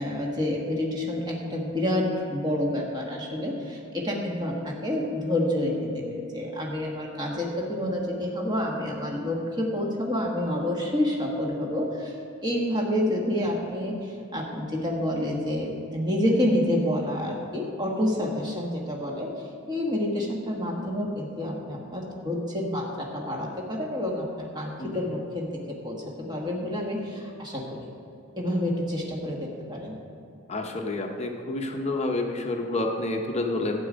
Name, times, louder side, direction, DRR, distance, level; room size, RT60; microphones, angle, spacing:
voice 1, 0.0-12.2 12.4-19.3 19.7-27.9 28.4-30.0, left 1 dB, 20° right, -2 dB, 1.4 m, -28 dB
voice 2, 30.5-33.8, left 2 dB, 30° left, 2 dB, 0.7 m, -29 dB
12.0 x 8.9 x 5.1 m, 2.8 s
head